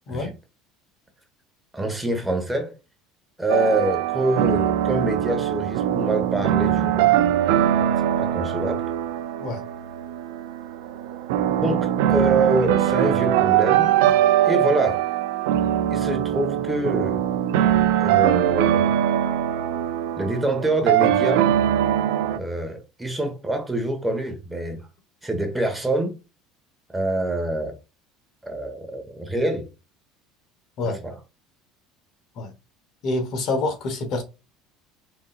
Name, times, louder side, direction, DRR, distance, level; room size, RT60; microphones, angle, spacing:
voice 1, 1.7-2.7 3.4-7.1 7.7-8.8 11.6-13.9 14.4-15.1 15.9-17.2 18.0-18.9 20.2-21.5 22.3-24.9 25.2-26.2 26.9-27.8 28.4-29.7 30.8-31.1, right 2 dB, 10° right, 1.4 m, -25 dB
sound 1, 3.5-22.4, right 11 dB, 80° right, 0.4 m, -22 dB
voice 2, 33.0-34.2, left 2 dB, 55° left, 1.2 m, -26 dB
4.0 x 3.6 x 2.5 m
supercardioid pair, 110°, 0 cm